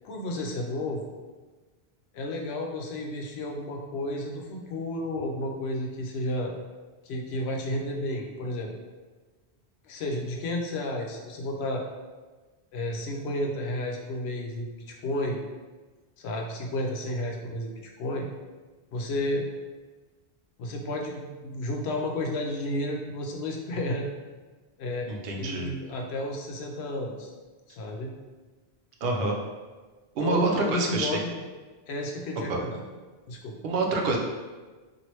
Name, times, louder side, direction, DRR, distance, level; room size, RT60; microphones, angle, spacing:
voice 1, 0.0-1.0 2.1-6.5 7.0-8.7 9.8-11.8 12.7-15.4 16.2-18.3 18.9-19.4 20.6-24.1 24.8-25.1 25.4-27.3 27.8-28.1 30.2-31.3 31.9-32.8 33.3-33.6, left 1 dB, 85° left, 1 dB, 0.8 m, -32 dB
voice 2, 25.1-25.7 29.0-29.4 30.2-31.1 32.5-32.6 33.6-34.2, right 3 dB, 70° right, 0 dB, 0.8 m, -27 dB
3.0 x 2.6 x 2.9 m, 1.3 s
omnidirectional pair, 1.1 m